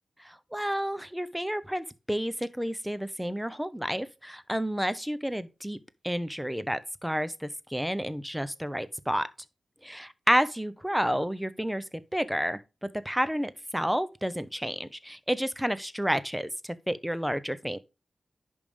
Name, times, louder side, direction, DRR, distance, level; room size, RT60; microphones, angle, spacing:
voice 1, 0.2-5.8 6.0-9.3 9.8-17.8, equal, 5° right, 0.7 m, -30 dB
10.5 x 3.5 x 5.0 m
cardioid pair, 60°, 0 cm